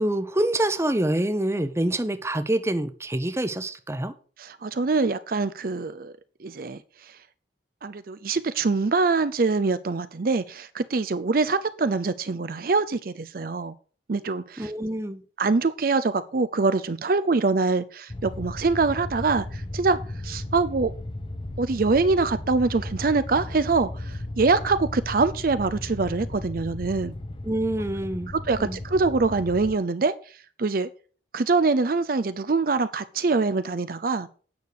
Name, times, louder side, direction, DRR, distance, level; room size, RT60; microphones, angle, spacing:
voice 1, 0.0-4.1 14.6-15.2 27.4-28.3 28.6-28.8, right 1 dB, 15° right, 0.8 m, -26 dB
voice 2, 4.4-6.1 6.4-7.2 7.8-13.7 14.1-14.7 15.4-20.0 20.2-20.9 21.6-27.1 28.5-30.9 31.3-34.3, right 3 dB, 50° right, 0.5 m, -24 dB
sound 1, 18.1-29.7, left 1 dB, 30° left, 0.7 m, -35 dB
9.4 x 6.5 x 6.7 m
head